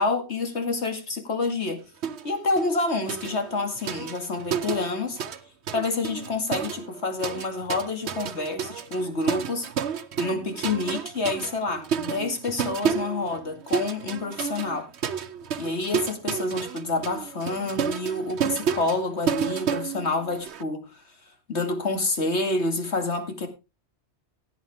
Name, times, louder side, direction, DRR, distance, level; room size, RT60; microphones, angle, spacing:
voice 1, 0.0-1.8 2.2-5.2 5.7-9.7 10.2-14.9 15.6-21.0 21.5-23.5, left 3 dB, 80° left, 2.6 m, -28 dB
sound 1, 2.0-2.3 2.6-5.4 5.7-20.6, right 7 dB, 75° right, 1.1 m, -31 dB
16.5 x 8.7 x 3.5 m
omnidirectional pair, 1.1 m